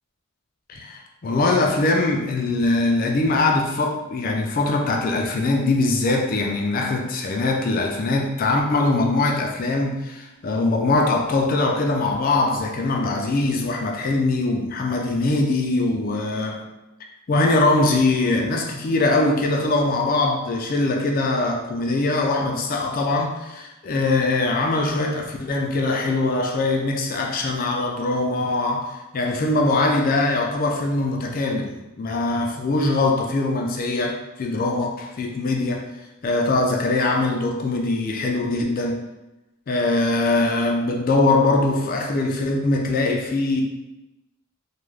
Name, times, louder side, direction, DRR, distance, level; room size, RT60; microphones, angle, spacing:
voice 1, 0.7-16.6 17.3-35.8 36.2-39.0 39.7-43.6, left 2 dB, 40° left, 1 dB, 0.3 m, -22 dB
2.3 x 2.2 x 3.1 m, 1.0 s
head